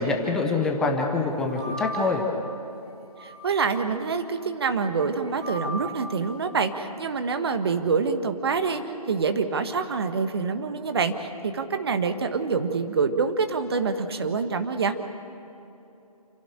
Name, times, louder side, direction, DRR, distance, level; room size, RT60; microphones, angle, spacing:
voice 1, 0.0-2.2, left 3 dB, 5° left, 1 dB, 0.5 m, -25 dB
sound 1, 1.4-2.3 3.0-3.9 4.8-6.3, right 1 dB, 20° right, 3.2 m, -37 dB
voice 2, 3.2-8.8 9.1-14.9, right 5 dB, 40° right, 8 dB, 1.5 m, -26 dB
29.5 x 11.5 x 9.0 m, 2.9 s
figure-of-eight pair, 150°, 19 cm